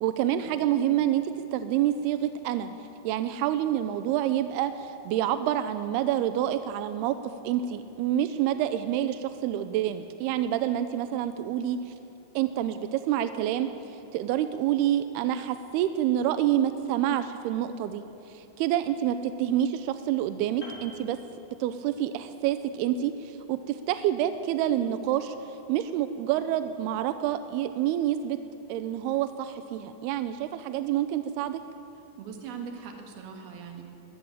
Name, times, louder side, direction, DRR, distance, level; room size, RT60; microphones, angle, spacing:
voice 1, 0.0-2.7 3.0-7.2 7.4-11.9 12.4-13.7 14.1-18.0 18.3-21.2 21.6-25.4 25.7-28.4 28.7-31.6, right 11 dB, 80° right, 10 dB, 2.3 m, -27 dB
Piano, 20.6-22.1 22.3-22.6, right 1 dB, 15° left, 4.5 m, -47 dB
voice 2, 32.2-33.8, right 6 dB, 60° right, 3 dB, 3.5 m, -41 dB
22.0 x 13.5 x 8.9 m, 2.7 s
omnidirectional pair, 5.3 m